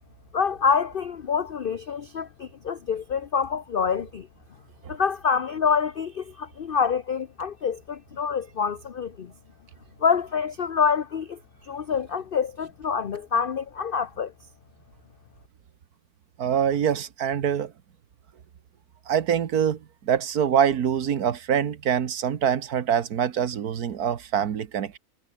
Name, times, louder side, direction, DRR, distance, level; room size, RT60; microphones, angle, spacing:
voice 1, 0.3-4.3 4.9-9.3 10.0-14.3, left 6 dB, 45° left, 0.9 m, -26 dB
voice 2, 16.4-17.7 19.1-25.0, right 8 dB, 85° right, 1.7 m, -24 dB
omnidirectional pair, 1.6 m